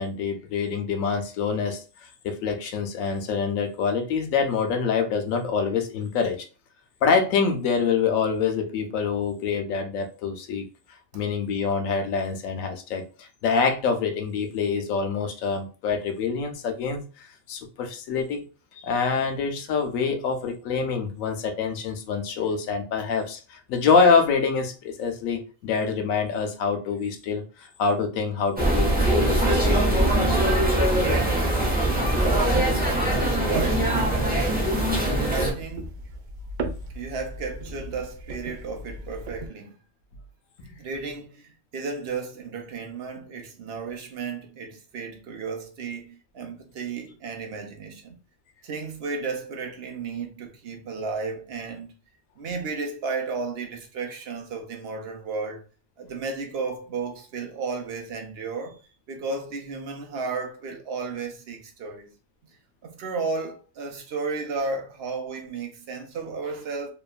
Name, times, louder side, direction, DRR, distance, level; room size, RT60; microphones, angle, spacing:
voice 1, 0.0-1.8 2.2-6.4 7.0-10.6 11.1-17.0 17.5-18.4 18.7-29.9, left 5 dB, 90° left, 1.0 m, -25 dB
sound 1, 28.6-35.5, right 1 dB, 10° right, 0.5 m, -22 dB
voice 2, 30.9-34.6 35.0-36.0 36.9-39.7 40.8-48.1 48.6-51.9 52.4-55.6 56.0-58.8 59.1-62.1 62.8-66.9, right 4 dB, 60° right, 0.7 m, -33 dB
sound 2, 31.4-39.5, right 2 dB, 80° right, 0.4 m, -37 dB
2.9 x 2.3 x 2.3 m
omnidirectional pair, 1.3 m